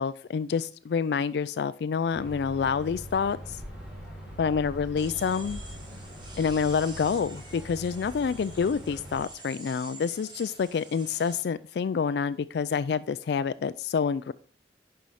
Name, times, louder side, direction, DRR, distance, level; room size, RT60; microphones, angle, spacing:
voice 1, 0.0-3.6 4.4-5.6 6.4-14.3, left 6 dB, 60° left, 15 dB, 0.3 m, -28 dB
sound 1, 2.1-9.2, equal, 5° right, 3.3 m, -42 dB
sound 2, 5.0-11.4, right 2 dB, 25° right, 1.8 m, -47 dB
10.0 x 5.6 x 4.7 m, 0.44 s
head